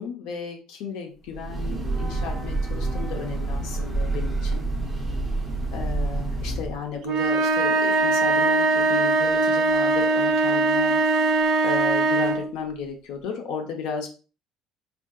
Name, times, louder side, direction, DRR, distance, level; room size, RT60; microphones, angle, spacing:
voice 1, 0.0-4.6 5.7-11.4 11.6-14.1, left 6 dB, 70° left, 3 dB, 0.6 m, -34 dB
Breathing / Train, 1.3-6.8, right 2 dB, 5° right, 0.5 m, -28 dB
sound 1, 7.0-12.5, right 3 dB, 50° right, 0.5 m, -21 dB
3.6 x 2.6 x 2.2 m, 0.35 s
cardioid pair, 180°, 0 cm